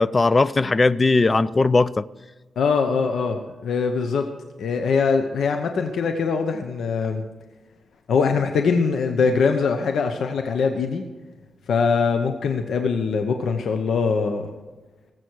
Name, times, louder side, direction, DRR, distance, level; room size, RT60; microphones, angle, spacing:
voice 1, 0.0-2.0, left 3 dB, 25° left, 0.4 m, -18 dB
voice 2, 2.6-4.3 4.6-7.2 8.1-11.0 11.7-14.5, left 5 dB, 75° left, 1.0 m, -22 dB
19.5 x 8.0 x 4.7 m
cardioid pair, 115°, 0 cm